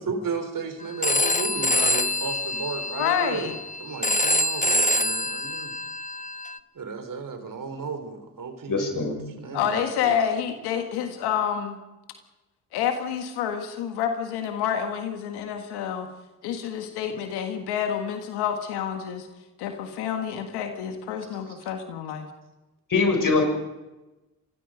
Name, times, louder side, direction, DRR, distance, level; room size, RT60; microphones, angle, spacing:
voice 1, 0.0-3.5 3.8-5.7 6.7-10.2 21.5-21.7, right 5 dB, 55° right, 7 dB, 4.1 m, -34 dB
Telephone, 1.0-6.6, left 1 dB, 20° left, 1.2 m, -25 dB
voice 2, 3.0-3.6 9.5-11.8 12.7-16.1 16.4-19.3 19.6-22.3, left 8 dB, 85° left, 6 dB, 1.8 m, -28 dB
voice 3, 8.7-9.4 22.9-23.4, left 4 dB, 55° left, 3 dB, 6.6 m, -23 dB
26.0 x 20.5 x 5.2 m, 1.1 s
hypercardioid pair, 40°, 38 cm